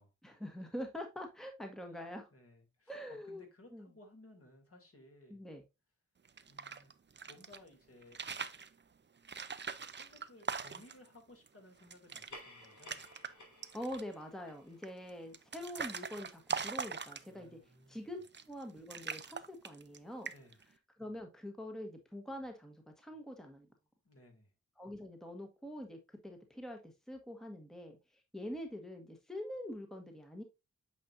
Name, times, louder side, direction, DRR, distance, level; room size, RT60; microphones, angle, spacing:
voice 1, 0.2-2.3 2.9-3.5 3.7-3.9 5.3-5.6 13.7-20.3 21.0-23.7 24.8-30.4, left 1 dB, ahead, 1.2 m, -45 dB
voice 2, 2.3-5.4 6.5-6.9 7.2-8.2 9.9-13.0 17.2-18.0 20.3-20.6 24.0-24.5, left 1 dB, 50° left, 2.7 m, -60 dB
sound 1, 6.2-7.6 8.0-8.7 9.2-11.1 11.5-11.6 11.8-12.3 12.6-13.3 13.6-14.1 14.8-17.5 18.2-18.6 18.9-20.0 20.2-20.6, right 5 dB, 40° right, 0.6 m, -41 dB
sound 2, 12.0-16.9, left 1 dB, 75° left, 2.7 m, -57 dB
8.6 x 5.1 x 2.6 m
wide cardioid pair, 90°, 29 cm